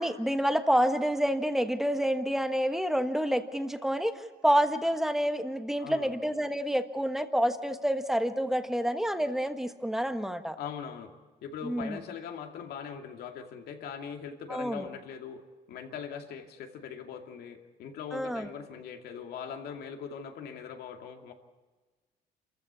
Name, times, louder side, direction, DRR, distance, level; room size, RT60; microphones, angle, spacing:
voice 1, 0.0-10.6 11.6-12.0 14.5-14.9 18.1-18.5, equal, ahead, 8 dB, 1.4 m, -28 dB
voice 2, 5.8-6.1 10.6-11.1 11.4-15.4 15.7-21.3, left 7 dB, 70° left, 5 dB, 2.5 m, -41 dB
27.0 x 14.5 x 8.3 m, 1.3 s
cardioid pair, 110°, 17 cm